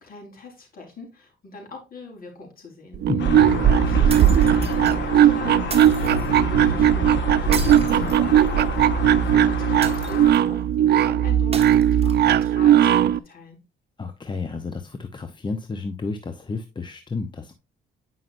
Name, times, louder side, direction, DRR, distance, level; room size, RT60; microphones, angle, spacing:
voice 1, 0.0-3.0 3.7-7.7 8.7-13.6, left 3 dB, 45° left, 4.2 m, -42 dB
sound 1, 2.9-13.2, right 10 dB, 55° right, 0.4 m, -18 dB
voice 2, 3.1-3.5 7.9-8.4 14.0-17.6, left 4 dB, 25° left, 0.8 m, -31 dB
sound 2, 3.2-10.3, left 5 dB, 65° left, 1.7 m, -29 dB
sound 3, 4.1-5.0 5.7-6.3 7.5-8.7 9.8-10.5 11.5-12.5, right 5 dB, 30° right, 1.6 m, -36 dB
9.2 x 5.6 x 2.6 m
cardioid pair, 90°, 20 cm